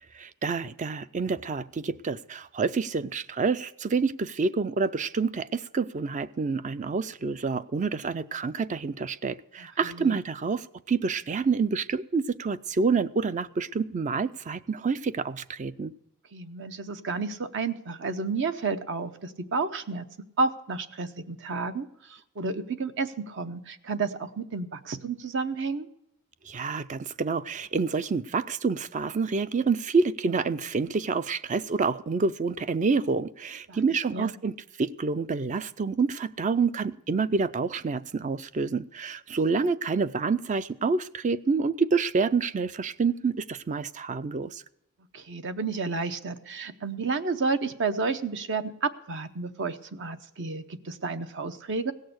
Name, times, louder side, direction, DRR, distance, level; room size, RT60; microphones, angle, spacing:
voice 1, 0.1-15.9 26.5-44.6, right 4 dB, 35° right, 15 dB, 0.4 m, -28 dB
voice 2, 9.6-10.2 16.3-20.0 20.4-25.9 33.7-33.8 34.1-34.3 39.5-39.7 45.1-51.9, right 4 dB, 60° right, 10 dB, 0.8 m, -31 dB
17.0 x 6.6 x 7.9 m, 0.82 s
head